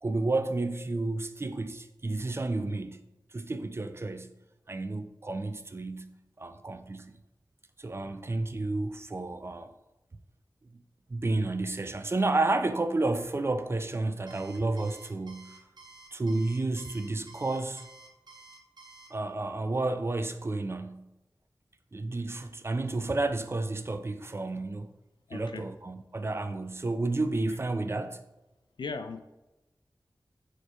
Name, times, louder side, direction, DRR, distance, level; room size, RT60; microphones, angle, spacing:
voice 1, 0.0-3.0 3.3-4.3 4.7-7.2 7.8-9.7 10.7-10.8 11.1-15.6 16.1-17.9 19.1-21.1 21.9-24.9 25.3-28.2, right 2 dB, 35° right, 0.3 m, -31 dB
Alarm, 14.3-19.1, right 3 dB, 65° right, 0.7 m, -52 dB
voice 2, 25.3-25.6 27.5-27.6 28.8-29.2, left 4 dB, 80° left, 0.4 m, -37 dB
6.4 x 3.1 x 2.3 m
wide cardioid pair, 65°, 8 cm